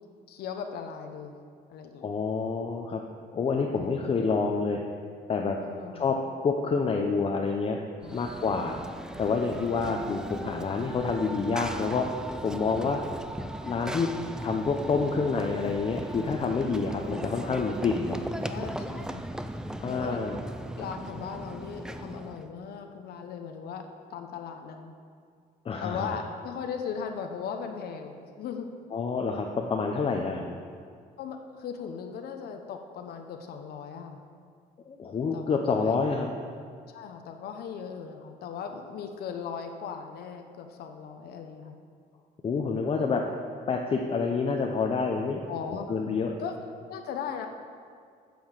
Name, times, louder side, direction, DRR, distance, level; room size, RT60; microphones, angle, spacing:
voice 1, 0.3-1.4 1.7-2.1 3.8-4.0 5.6-6.2 8.0-8.2 9.5-10.0 16.2-16.4 18.4-19.3 19.9-20.2 20.8-24.9 25.8-28.7 31.2-34.2 35.3-36.0 36.9-41.7 45.5-45.9 46.4-46.5 46.9-47.5, left 7 dB, 65° left, 5 dB, 0.9 m, -38 dB
voice 2, 2.0-3.0 3.3-4.8 5.3-5.6 5.9-6.2 6.4-7.8 8.1-8.8 9.2-12.1 12.4-13.0 13.6-14.1 14.4-18.2 19.8-20.4 25.6-26.2 28.9-30.6 34.9-36.3 42.4-43.2 43.7-45.5 45.9-46.4, left 4 dB, 35° left, 1 dB, 0.8 m, -28 dB
Run / Train, 8.0-22.5, right 1 dB, 5° right, 0.4 m, -38 dB
9.5 x 7.0 x 6.6 m, 2.2 s
cardioid pair, 110°, 17 cm